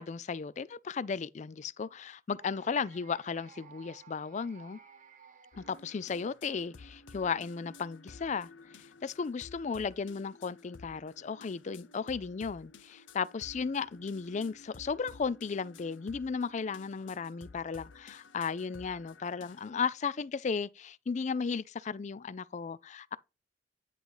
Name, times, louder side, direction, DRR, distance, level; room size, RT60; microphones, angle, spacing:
voice 1, 0.0-4.8 5.6-8.5 9.0-23.2, left 5 dB, 40° left, 0.4 m, -35 dB
sound 1, 2.4-6.5, right 6 dB, 45° right, 1.0 m, -57 dB
sound 2, 5.5-19.7, left 3 dB, 85° left, 0.7 m, -54 dB
9.9 x 3.9 x 4.7 m
head